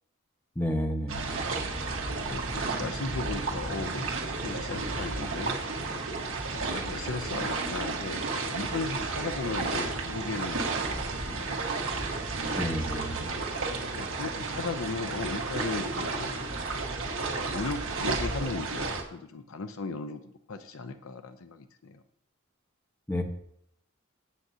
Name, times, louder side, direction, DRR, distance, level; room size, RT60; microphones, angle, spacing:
voice 1, 0.5-1.3 12.6-13.3 23.1-23.2, equal, 10° left, 2 dB, 1.2 m, -30 dB
sound 1, 1.1-19.0, right 3 dB, 70° right, 1.5 m, -32 dB
voice 2, 2.1-4.1 4.4-11.6 12.7-12.8 13.7-16.4 17.2-22.0, left 3 dB, 85° left, 9 dB, 0.7 m, -37 dB
14.0 x 7.6 x 2.8 m, 0.72 s
head